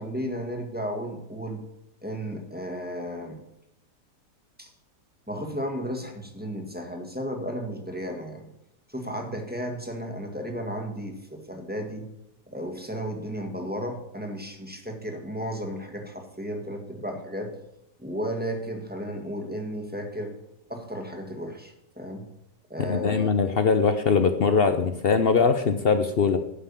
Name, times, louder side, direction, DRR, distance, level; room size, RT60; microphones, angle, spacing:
voice 1, 0.0-1.6 2.0-3.4 4.6-4.7 5.3-8.5 8.9-12.1 12.5-17.5 18.0-20.3 20.7-22.2 22.7-23.3, equal, 5° right, 3 dB, 1.5 m, -34 dB
voice 2, 22.9-26.4, left 5 dB, 65° left, 9 dB, 0.5 m, -22 dB
12.0 x 5.7 x 6.9 m, 0.85 s
omnidirectional pair, 1.8 m